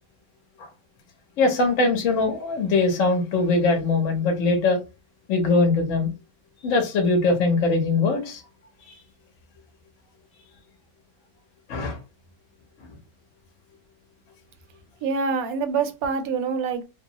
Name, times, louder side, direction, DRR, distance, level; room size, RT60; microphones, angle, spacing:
voice 1, 1.4-4.8 5.3-6.1 6.6-8.4 8.9-9.0 11.7-12.0, left 3 dB, 60° left, 1.1 m, -21 dB
voice 2, 15.0-16.9, right 5 dB, 75° right, 1.0 m, -25 dB
3.0 x 2.0 x 2.7 m
omnidirectional pair, 1.6 m